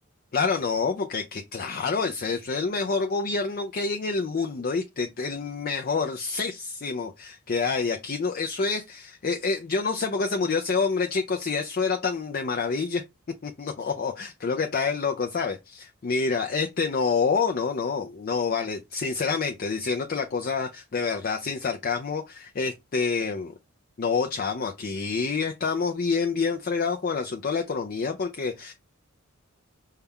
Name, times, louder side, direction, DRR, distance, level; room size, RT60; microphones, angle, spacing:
voice 1, 0.3-13.0 13.4-23.5 24.0-28.7, left 4 dB, 45° left, 0.4 m, -27 dB
5.4 x 2.3 x 3.5 m
head